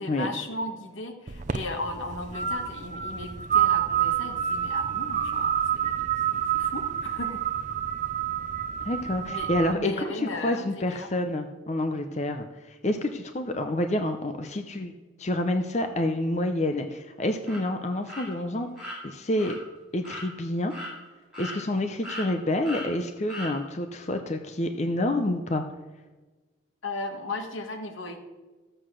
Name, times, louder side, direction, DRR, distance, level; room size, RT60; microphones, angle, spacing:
voice 1, 0.0-7.4 9.3-9.5 9.8-11.1 26.8-28.2, left 2 dB, 80° left, 5 dB, 1.7 m, -36 dB
sound 1, 1.3-9.7, right 9 dB, 40° right, 0.5 m, -28 dB
voice 2, 8.8-18.7 19.0-19.6 19.9-20.7 21.4-25.6, left 1 dB, 35° left, 6 dB, 0.6 m, -28 dB
sound 2, 17.4-17.6 18.1-18.3 18.8-19.0 19.4-19.6 20.0-20.3 20.7-20.9 21.3-21.8 22.0-22.3 22.6-22.9 23.3-23.5, left 1 dB, 5° right, 4.7 m, -37 dB
13.5 x 7.8 x 6.3 m, 1.3 s
head